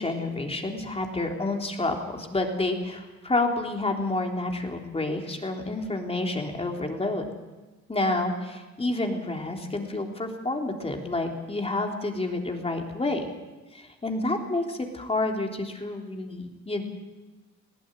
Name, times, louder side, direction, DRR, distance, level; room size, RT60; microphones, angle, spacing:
voice 1, 0.0-7.2 7.9-13.3 13.7-16.8, left 2 dB, 20° left, 2 dB, 3.5 m, -29 dB
20.5 x 15.5 x 9.2 m, 1.2 s
cardioid pair, 90°, 30 cm